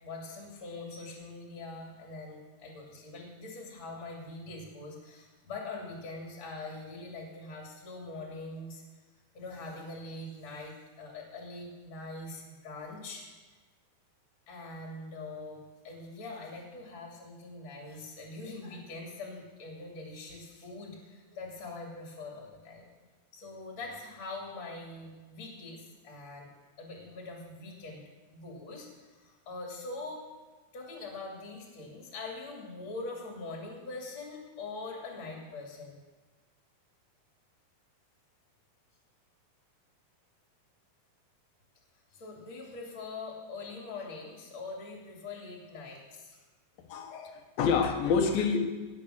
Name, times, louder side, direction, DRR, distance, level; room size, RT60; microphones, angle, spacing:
voice 1, 0.0-8.8 9.3-13.2 14.5-22.9 23.3-26.5 26.8-28.0 28.3-30.2 30.7-36.0 42.1-46.4, left 3 dB, 35° left, -1 dB, 3.0 m, -43 dB
voice 2, 46.9-48.7, left 5 dB, 75° left, 4 dB, 3.1 m, -27 dB
17.5 x 7.0 x 6.5 m, 1.3 s
omnidirectional pair, 4.2 m